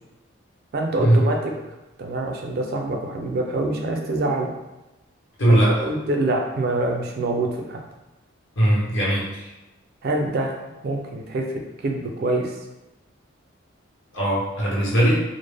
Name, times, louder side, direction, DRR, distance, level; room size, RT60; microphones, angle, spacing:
voice 1, 0.7-1.5 2.0-4.5 5.4-7.8 10.0-10.6 10.8-12.5, right 2 dB, 50° right, 2 dB, 0.4 m, -25 dB
voice 2, 5.4-5.7 8.6-9.5 14.1-15.2, right 1 dB, 65° left, -6 dB, 0.9 m, -19 dB
2.0 x 2.0 x 3.3 m, 1.0 s
head